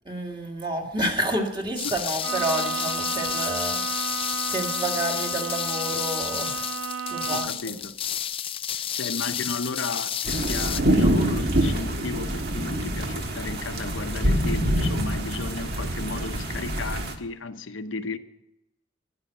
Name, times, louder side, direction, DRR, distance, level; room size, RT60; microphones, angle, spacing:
voice 1, 0.1-6.8 7.1-7.5, right 1 dB, 25° right, 2.1 m, -30 dB
sound 1, 1.8-10.8, left 9 dB, 25° left, 0.4 m, -31 dB
Bowed string instrument, 2.2-7.7, right 6 dB, 80° right, 0.5 m, -33 dB
voice 2, 7.3-8.0 8.8-18.2, left 3 dB, 70° left, 0.9 m, -34 dB
sound 2, 10.2-17.1, right 1 dB, 55° right, 1.6 m, -25 dB
11.5 x 10.5 x 9.1 m
head